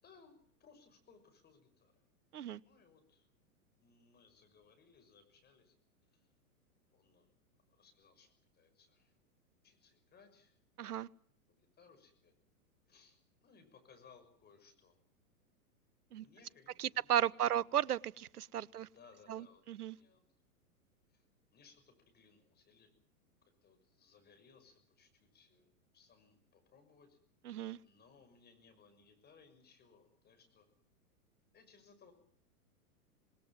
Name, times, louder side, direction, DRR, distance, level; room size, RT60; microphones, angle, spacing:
voice 1, 0.0-2.0 2.6-3.4 3.8-5.7 6.1-6.3 6.9-7.3 7.7-9.1 9.6-10.6 11.5-12.3 12.9-15.0 16.1-17.1 17.4-17.7 18.7-20.3 21.1-21.3 21.5-22.9 23.6-27.2 27.8-30.7 31.5-32.1, left 5 dB, 20° left, 7 dB, 6.4 m, -64 dB
voice 2, 10.8-11.1 16.1-16.2 16.8-18.9 19.3-20.0 27.4-27.8, right 10 dB, 80° right, 23 dB, 0.9 m, -35 dB
26.5 x 20.0 x 7.4 m, 0.65 s
hypercardioid pair, 115°, 45 cm